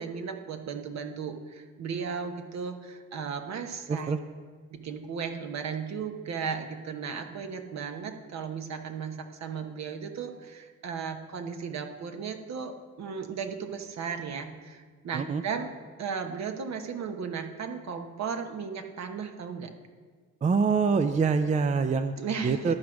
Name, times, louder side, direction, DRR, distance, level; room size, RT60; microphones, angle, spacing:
voice 1, 0.0-4.1 4.7-15.7 16.0-19.7 22.2-22.8, right 6 dB, 60° right, 6 dB, 1.1 m, -35 dB
voice 2, 20.4-22.1 22.4-22.7, right 5 dB, 25° right, 10 dB, 0.4 m, -25 dB
12.0 x 4.6 x 6.2 m, 1.5 s
cardioid pair, 90°, 30 cm